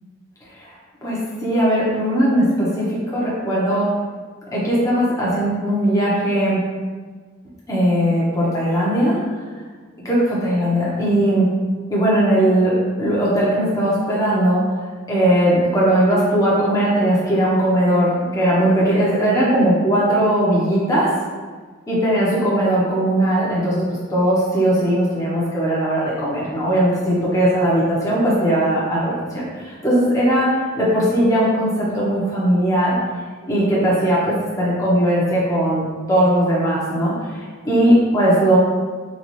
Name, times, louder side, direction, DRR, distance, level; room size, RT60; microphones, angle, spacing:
voice 1, 1.0-3.9 4.5-6.6 7.7-9.2 10.0-11.5 11.9-14.7 15.1-21.1 21.9-23.8 24.1-30.5 30.8-33.0 33.5-38.6, right 1 dB, 15° left, -7 dB, 0.7 m, -19 dB
4.0 x 2.3 x 3.0 m, 1.5 s
head